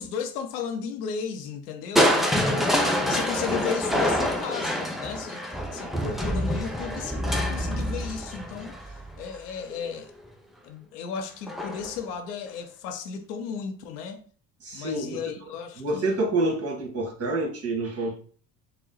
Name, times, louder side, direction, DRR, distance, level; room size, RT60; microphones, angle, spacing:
voice 1, 0.0-2.7 3.0-5.4 5.7-8.8 9.2-10.1 10.6-14.2 14.7-16.2, left 6 dB, 80° left, 0.7 m, -34 dB
Crushing, 2.0-9.9 11.5-12.0 12.5-12.6, equal, ahead, 0.6 m, -26 dB
voice 2, 14.6-15.2 15.8-18.2, right 2 dB, 30° right, 1.6 m, -27 dB
4.0 x 2.1 x 3.9 m
hypercardioid pair, 65°, 46 cm